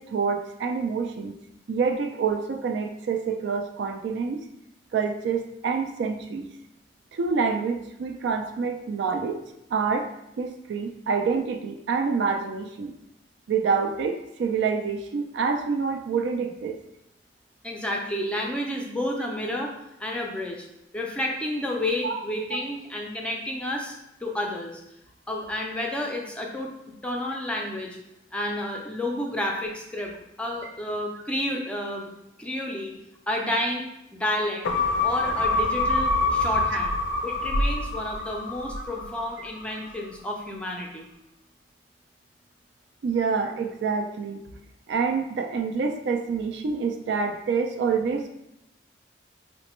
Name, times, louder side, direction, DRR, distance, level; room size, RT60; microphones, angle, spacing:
voice 1, 0.0-1.3 1.7-4.4 4.9-6.5 7.1-9.4 9.7-10.1 10.4-12.9 13.5-16.8 22.0-22.2 22.5-22.6 38.8-38.9 43.0-44.4 44.9-48.3, right 5 dB, 65° right, 5 dB, 0.3 m, -27 dB
voice 2, 17.6-19.7 20.0-20.7 20.9-23.9 24.2-24.8 25.3-26.7 27.0-28.0 28.3-30.1 30.4-32.1 32.4-32.9 33.3-33.9 34.1-34.6 35.0-36.9 37.2-41.1, left 1 dB, 5° left, 0 dB, 0.4 m, -30 dB
sound 1, 34.6-39.3 39.7-39.8, left 2 dB, 80° left, 0.4 m, -25 dB
4.0 x 2.1 x 3.0 m, 0.86 s
head